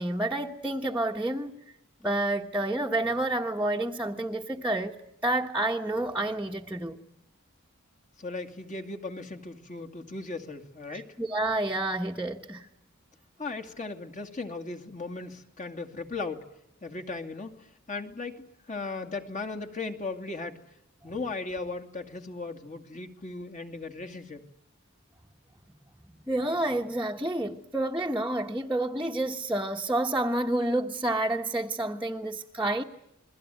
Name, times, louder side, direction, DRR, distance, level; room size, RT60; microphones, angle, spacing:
voice 1, 0.0-1.6 2.0-5.0 5.2-7.0 10.9-12.7 26.3-32.8, right 1 dB, 10° right, 1.2 m, -29 dB
voice 2, 8.2-11.1 13.4-16.4 16.8-20.6 21.0-24.4, left 3 dB, 35° left, 2.4 m, -37 dB
29.0 x 21.5 x 9.2 m
head